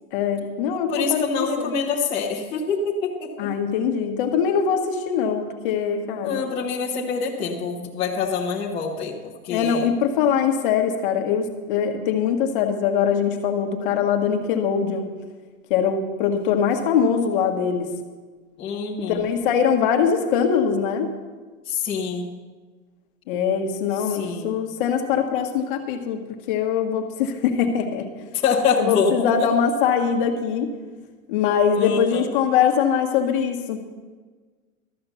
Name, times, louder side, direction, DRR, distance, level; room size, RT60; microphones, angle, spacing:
voice 1, 0.1-1.7 3.4-6.4 9.5-15.1 15.7-17.9 19.1-21.1 23.3-26.2 26.5-28.1 28.8-30.7 31.3-33.8, left 7 dB, 40° left, 4 dB, 1.2 m, -22 dB
voice 2, 0.9-3.3 6.2-9.1 9.4-9.9 18.6-19.3 21.7-22.3 24.1-24.5 28.3-29.3 31.8-32.3, left 5 dB, 15° left, -5 dB, 0.9 m, -25 dB
13.0 x 7.6 x 6.8 m, 1.4 s
supercardioid pair, 170°, 42 cm